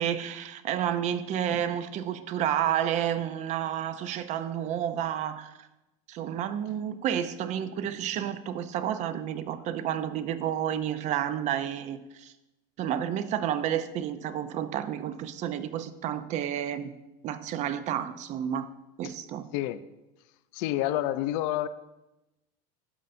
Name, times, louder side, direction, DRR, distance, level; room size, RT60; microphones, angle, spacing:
voice 1, 0.0-5.5 6.1-12.3 12.8-16.9 17.2-18.7 19.0-19.5, right 10 dB, 40° right, 0.5 m, -30 dB
voice 2, 20.5-21.7, left 14 dB, 65° left, 0.4 m, -28 dB
12.0 x 5.4 x 2.6 m
supercardioid pair, 135°, 18 cm